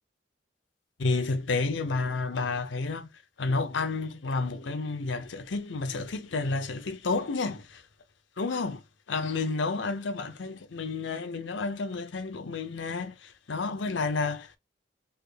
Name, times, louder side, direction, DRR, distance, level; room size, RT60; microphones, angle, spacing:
voice 1, 1.0-3.1 3.4-7.8 8.4-8.8 9.1-14.6, left 3 dB, 90° left, 0.7 m, -30 dB
3.4 x 2.4 x 3.4 m
head